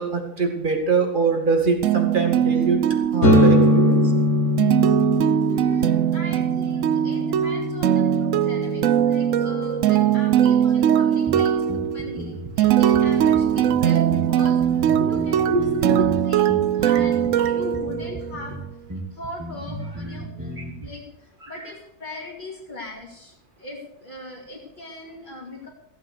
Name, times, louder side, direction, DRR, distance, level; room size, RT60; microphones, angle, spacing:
voice 1, 0.0-2.8 3.1-4.0 15.5-16.1 20.6-20.7, right 4 dB, 30° right, 4 dB, 2.3 m, -23 dB
sound 1, 1.8-18.5, right 10 dB, 65° right, 0.9 m, -21 dB
sound 2, 3.2-10.8, left 1 dB, 50° left, 2.1 m, -23 dB
voice 2, 5.4-14.6 15.0-18.5 19.1-23.3 23.6-25.7, left 2 dB, 30° left, -3 dB, 2.4 m, -39 dB
sound 3, 11.3-20.9, right 2 dB, 10° right, 1.7 m, -35 dB
15.0 x 8.2 x 6.6 m, 0.80 s
omnidirectional pair, 1.7 m